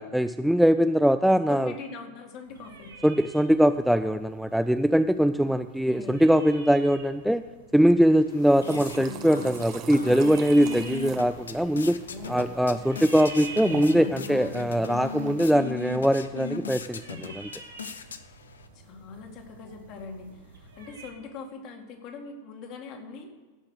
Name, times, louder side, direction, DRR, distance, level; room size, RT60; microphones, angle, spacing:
voice 1, 0.0-1.7 3.0-7.4 7.7-12.0 12.3-17.5, equal, ahead, 9 dB, 0.3 m, -22 dB
voice 2, 1.5-2.9 5.4-6.3 12.1-12.9 18.7-23.4, left 4 dB, 40° left, 4 dB, 2.0 m, -42 dB
sound 1, 2.5-21.1, right 4 dB, 70° right, 2.4 m, -48 dB
sound 2, 8.1-18.7, left 6 dB, 70° left, 0.7 m, -38 dB
sound 3, 8.3-15.4, right 9 dB, 35° right, 0.8 m, -42 dB
16.5 x 5.8 x 6.4 m, 1.4 s
figure-of-eight pair, 90°, 0 cm